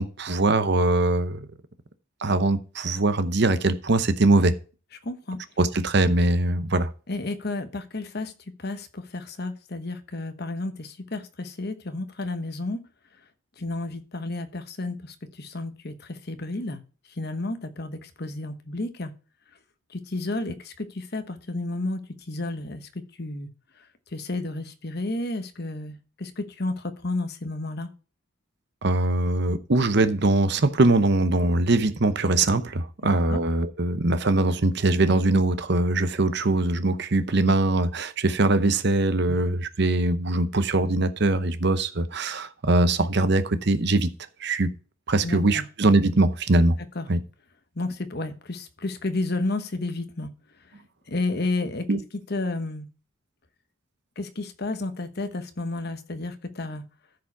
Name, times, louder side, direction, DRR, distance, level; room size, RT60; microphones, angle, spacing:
voice 1, 0.0-1.4 2.2-4.6 5.6-6.9 28.8-44.1 44.4-44.7 45.1-46.8 47.1-47.2 51.9-52.0, right 2 dB, 50° right, 0.8 m, -22 dB
voice 2, 5.0-5.4 7.1-8.3 8.6-12.8 13.6-16.8 17.1-19.1 19.9-23.5 24.1-27.9 33.0-33.4 39.3-39.4 45.2-45.6 46.9-47.1 47.7-50.3 51.1-52.9 54.2-56.8, left 2 dB, 50° left, 1.1 m, -32 dB
14.0 x 5.0 x 4.7 m
head